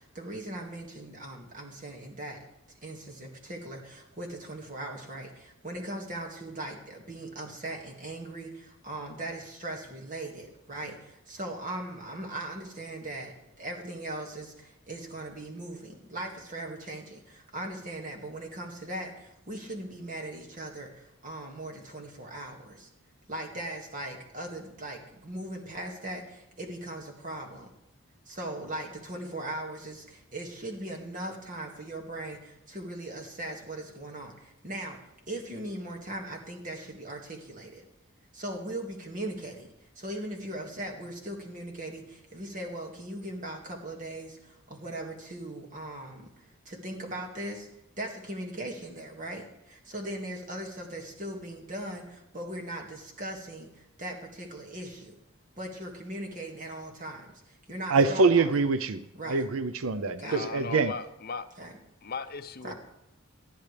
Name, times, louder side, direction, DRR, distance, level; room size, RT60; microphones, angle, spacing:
voice 1, 0.0-2.4 2.8-22.9 23.3-27.7 28.3-35.0 35.3-37.8 38.3-39.7 40.0-47.7 48.0-55.2 55.6-58.6 59.1-59.4 60.2-60.5 61.6-61.8 62.6-62.7, right 1 dB, 40° right, 2 dB, 2.0 m, -39 dB
voice 2, 57.9-60.9, right 4 dB, 80° right, 13 dB, 0.6 m, -25 dB
voice 3, 60.2-61.4 62.0-62.7, left 5 dB, 45° left, 10 dB, 0.6 m, -37 dB
19.5 x 13.0 x 3.4 m, 0.88 s
head